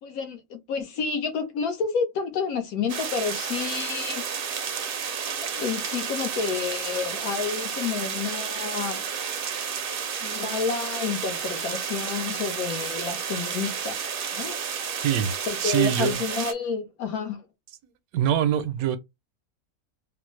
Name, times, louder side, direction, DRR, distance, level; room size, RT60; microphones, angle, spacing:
voice 1, 0.0-4.2 5.2-9.0 10.2-14.0 14.3-14.6 15.5-17.4, left 5 dB, 90° left, 1.3 m, -30 dB
sound 1, 2.9-16.5, right 7 dB, 60° right, 0.6 m, -31 dB
voice 2, 15.6-16.2 18.1-19.0, right 10 dB, 85° right, 1.1 m, -23 dB
3.7 x 2.0 x 3.1 m
omnidirectional pair, 1.5 m